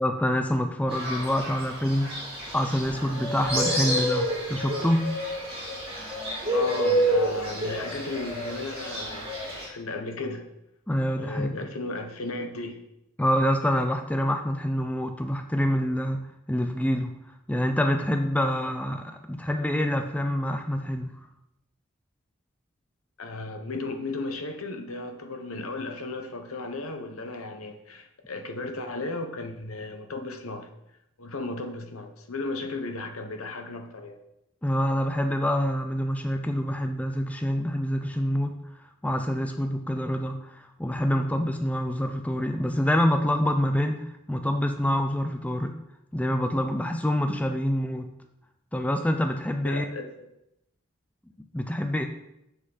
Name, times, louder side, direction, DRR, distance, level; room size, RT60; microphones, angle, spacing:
voice 1, 0.0-2.1 2.5-5.1 10.9-11.6 13.2-16.2 16.5-17.1 17.5-21.2 34.6-38.5 39.0-45.7 46.1-48.1 48.7-49.9 51.5-52.0, equal, 5° left, 6 dB, 0.4 m, -26 dB
Fowl, 0.9-9.6, right 1 dB, 25° right, 2.6 m, -29 dB
voice 2, 6.5-10.5 11.1-12.8 23.2-30.7 31.2-34.2 49.6-50.3, left 2 dB, 85° left, 6 dB, 1.1 m, -35 dB
7.4 x 6.5 x 4.0 m, 0.82 s
head